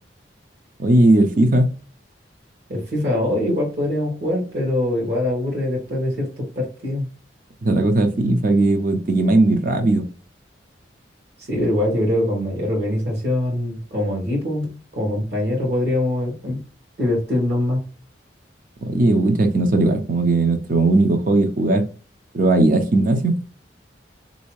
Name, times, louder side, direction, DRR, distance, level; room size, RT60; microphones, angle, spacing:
voice 1, 0.8-1.7 7.6-10.0 18.9-21.8 22.3-23.4, right 2 dB, 45° right, 6 dB, 0.5 m, -17 dB
voice 2, 2.7-7.1 11.5-16.6 17.0-17.8, left 1 dB, 60° right, -2 dB, 1.2 m, -23 dB
3.4 x 2.7 x 3.0 m, 0.37 s
head